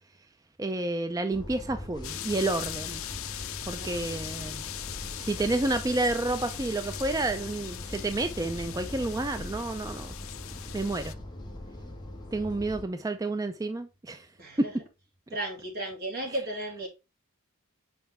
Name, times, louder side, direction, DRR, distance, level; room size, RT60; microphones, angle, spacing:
voice 1, 0.6-3.1 3.7-4.6 5.2-10.1 10.7-11.1 12.3-14.3, right 2 dB, 15° right, 0.4 m, -30 dB
sound 1, 1.3-12.8, left 1 dB, 20° left, 1.0 m, -41 dB
sound 2, 2.0-11.1, left 12 dB, 70° left, 0.5 m, -40 dB
voice 2, 3.7-4.2 14.4-14.7 15.3-16.9, right 1 dB, 45° right, 2.4 m, -35 dB
5.9 x 5.1 x 3.5 m
head